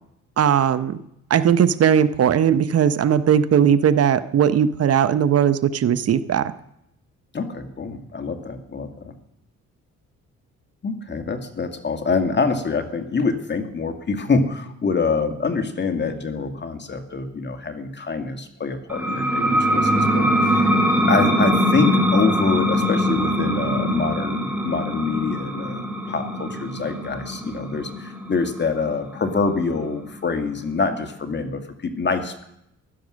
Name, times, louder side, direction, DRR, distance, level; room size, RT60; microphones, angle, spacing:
voice 1, 0.4-1.0 1.3-6.5, right 8 dB, 55° right, 13 dB, 0.8 m, -18 dB
voice 2, 7.3-9.1 10.8-20.7 21.1-32.4, left 4 dB, 35° left, 7 dB, 2.0 m, -25 dB
sound 1, 18.9-30.2, equal, 5° right, 2.9 m, -22 dB
16.0 x 12.0 x 6.3 m, 0.79 s
cardioid pair, 90°, 30 cm